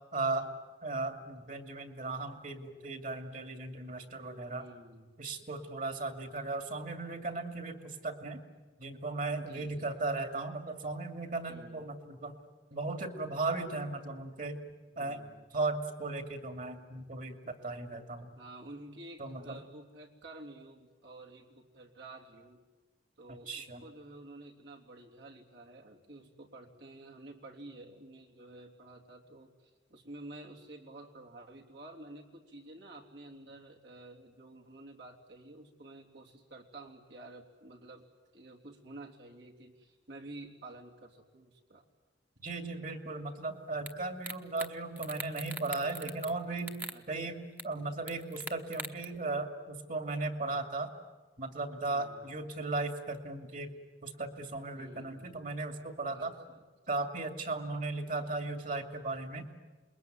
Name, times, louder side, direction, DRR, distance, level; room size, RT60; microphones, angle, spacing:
voice 1, 0.1-0.5 0.8-4.7 5.2-8.4 8.8-12.4 12.7-14.6 15.0-15.2 15.5-18.3 19.2-19.6 23.3-23.8 42.4-50.9 51.4-53.7 54.0-56.3 56.9-59.5, right 3 dB, 50° right, 6 dB, 2.5 m, -36 dB
voice 2, 4.5-5.1 9.4-9.9 11.5-11.9 14.9-15.4 18.3-22.6 23.2-38.0 38.3-41.8 46.9-47.3 51.8-52.2 54.7-55.4 56.1-56.6, right 2 dB, 80° right, 0 dB, 3.3 m, -51 dB
sound 1, 43.9-44.0 44.2-44.7 45.0-46.3 46.6-47.0 47.6-47.7 48.1-49.0, right 2 dB, 10° right, 1.1 m, -41 dB
28.0 x 21.5 x 9.3 m, 1.3 s
head